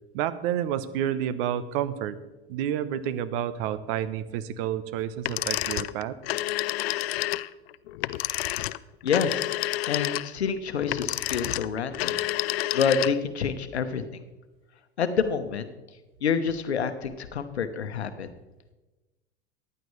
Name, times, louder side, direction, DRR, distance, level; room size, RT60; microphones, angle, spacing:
voice 1, 0.1-2.2 2.5-6.2, right 10 dB, 60° right, 14 dB, 0.9 m, -29 dB
sound 1, 5.2-13.4, left 16 dB, 70° left, 0.5 m, -29 dB
voice 2, 9.0-9.5 9.8-14.2 15.0-15.7 16.2-18.3, left 6 dB, 90° left, 10 dB, 1.0 m, -28 dB
15.5 x 10.0 x 3.2 m, 1.1 s
hypercardioid pair, 90°, 32 cm